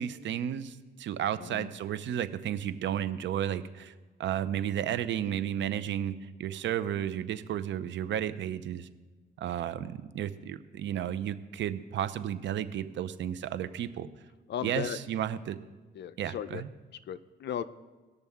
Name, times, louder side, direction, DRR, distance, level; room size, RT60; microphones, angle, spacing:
voice 1, 0.0-3.9 4.2-6.1 6.4-8.9 9.4-14.1 14.6-15.6 16.2-16.7, right 10 dB, 70° right, 13 dB, 0.6 m, -33 dB
voice 2, 1.4-1.7 14.5-15.0 15.9-16.6 17.1-17.6, left 9 dB, 60° left, 13 dB, 0.6 m, -36 dB
19.0 x 6.6 x 3.6 m, 1.3 s
cardioid pair, 90°, 20 cm